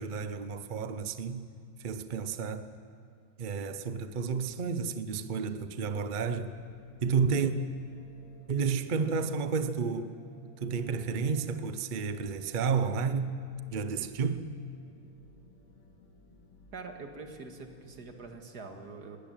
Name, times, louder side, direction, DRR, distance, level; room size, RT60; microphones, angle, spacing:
voice 1, 0.0-1.5 1.8-2.7 3.4-6.5 7.0-7.5 8.5-10.1 10.6-13.4 13.7-14.5, right 5 dB, 80° right, 0.4 m, -31 dB
sound 1, 6.0-18.4, left 3 dB, 80° left, 3.2 m, -59 dB
voice 2, 16.7-19.2, right 4 dB, 50° right, 2.3 m, -44 dB
20.5 x 18.0 x 8.9 m
omnidirectional pair, 2.2 m